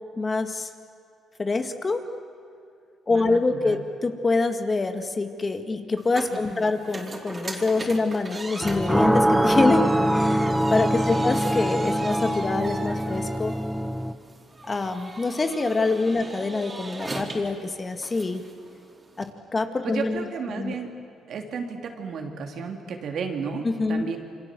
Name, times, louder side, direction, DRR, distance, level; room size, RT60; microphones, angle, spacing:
voice 1, 0.2-0.7 1.4-2.0 3.1-9.9 10.1-13.5 14.7-18.4 19.2-20.3 20.5-20.7 23.6-24.1, left 3 dB, 30° left, 7 dB, 1.9 m, -25 dB
voice 2, 3.1-3.8 6.3-6.7 11.1-11.3 19.8-20.9 21.3-24.2, right 5 dB, 65° right, 3 dB, 3.2 m, -33 dB
sound 1, 6.0-19.3, right 2 dB, 25° right, 3.9 m, -40 dB
sound 2, 8.6-14.1, equal, ahead, 0.9 m, -23 dB
28.0 x 24.5 x 7.7 m, 2.4 s
cardioid pair, 90°, 0 cm